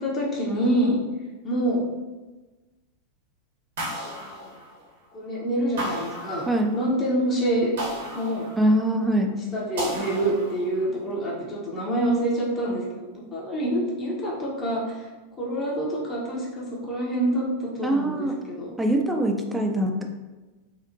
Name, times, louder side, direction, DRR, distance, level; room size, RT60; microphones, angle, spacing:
voice 1, 0.0-1.0 1.4-1.8 4.1-4.5 5.1-6.5 6.7-7.7 8.1-8.5 9.3-15.1 15.4-18.8, right 1 dB, 25° left, -4 dB, 0.7 m, -26 dB
sound 1, 3.8-5.1 5.8-6.9 7.8-9.0 9.8-10.9, equal, 55° right, 0.9 m, -34 dB
voice 2, 6.5-6.8 8.6-9.3 17.8-18.3 18.8-20.0, right 1 dB, 5° right, 3 dB, 0.3 m, -23 dB
2.9 x 2.4 x 2.5 m, 1.2 s
figure-of-eight pair, 90°, 0 cm